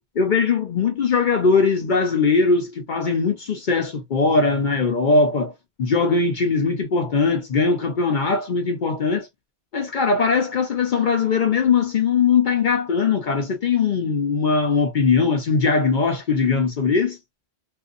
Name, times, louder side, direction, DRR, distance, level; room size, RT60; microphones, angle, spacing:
voice 1, 0.0-5.5 5.8-9.3 9.7-17.2, left 4 dB, 55° left, 0.7 m, -20 dB
2.6 x 2.5 x 2.5 m
omnidirectional pair, 1.1 m